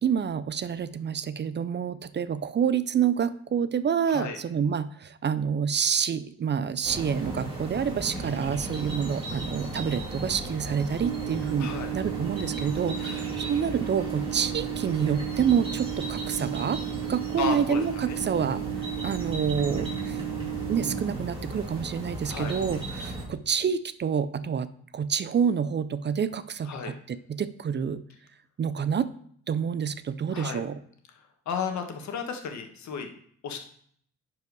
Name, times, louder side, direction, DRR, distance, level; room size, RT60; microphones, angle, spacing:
voice 1, 0.0-16.8 17.1-20.2 20.7-28.0 28.6-29.1 29.5-30.8, right 7 dB, 35° right, 14 dB, 0.5 m, -28 dB
sound 1, 6.8-23.2, right 1 dB, 15° right, 3.0 m, -36 dB
sound 2, 11.0-21.0, right 23 dB, 70° right, 0.8 m, -35 dB
voice 2, 11.6-11.9 17.4-17.8 18.1-18.2 22.3-22.5 26.7-26.9 30.3-30.6 31.4-33.1 33.4-33.6, left 6 dB, 65° left, 5 dB, 1.5 m, -33 dB
10.5 x 4.7 x 4.7 m, 0.62 s
cardioid pair, 90°, 30 cm